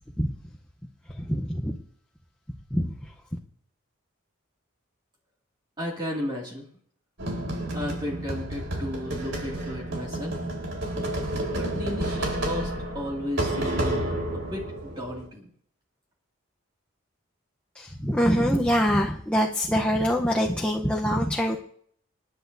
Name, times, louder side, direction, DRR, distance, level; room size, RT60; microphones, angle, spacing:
voice 1, 1.1-1.8 2.7-2.9 17.7-21.6, equal, 5° left, -1 dB, 0.8 m, -24 dB
voice 2, 5.8-6.6 7.7-10.4 11.4-15.5, left 1 dB, 20° right, -2 dB, 2.3 m, -34 dB
sound 1, 7.2-15.3, right 1 dB, 70° right, 4.0 m, -30 dB
27.5 x 10.5 x 2.7 m, 0.63 s
head